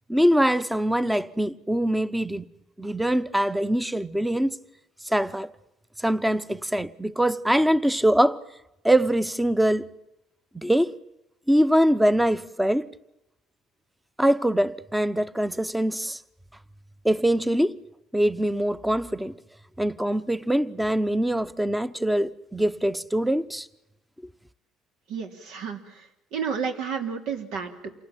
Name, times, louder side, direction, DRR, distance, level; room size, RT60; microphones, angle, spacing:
voice 1, 0.1-2.5 2.8-4.6 5.0-5.5 6.0-8.4 8.8-9.9 10.5-10.9 11.5-12.9 14.2-16.2 17.0-17.8 18.1-19.3 19.8-23.7, right 1 dB, 5° right, 0.9 m, -23 dB
voice 2, 25.1-27.9, right 6 dB, 80° right, 3.4 m, -32 dB
28.0 x 19.0 x 9.0 m
cardioid pair, 120°, 0 cm